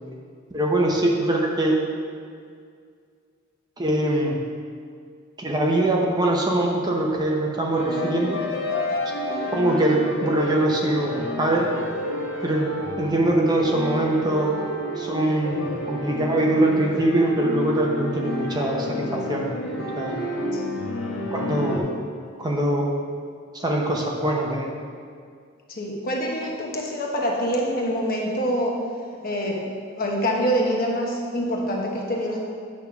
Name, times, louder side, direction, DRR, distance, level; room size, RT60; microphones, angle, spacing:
voice 1, 0.5-1.8 3.8-4.4 5.4-8.4 9.5-11.7 12.4-12.7 13.0-14.5 15.0-19.5 20.0-20.2 21.3-21.9 22.4-22.9 23.5-24.7, right 1 dB, 20° right, -1 dB, 0.7 m, -23 dB
sound 1, 7.7-21.8, left 1 dB, 80° left, 1.2 m, -30 dB
voice 2, 25.7-28.8 29.2-29.6 30.0-32.4, equal, 45° left, -1 dB, 1.1 m, -25 dB
8.3 x 3.5 x 5.9 m, 2.2 s
head